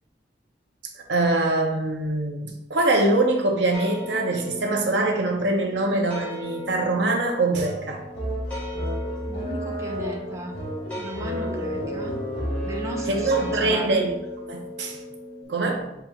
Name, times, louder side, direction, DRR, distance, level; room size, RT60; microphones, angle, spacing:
voice 1, 0.9-8.0 13.1-14.2 14.4-15.0 15.5-16.0, right 2 dB, 85° right, 2 dB, 0.8 m, -23 dB
sound 1, 3.7-15.4, left 2 dB, 10° left, 1.2 m, -38 dB
sound 2, 7.5-14.0, equal, 75° left, 1.5 m, -31 dB
voice 2, 9.3-10.6 11.0-12.2 12.6-14.0, right 1 dB, 15° right, 0 dB, 0.6 m, -35 dB
6.6 x 2.9 x 2.4 m, 0.86 s
head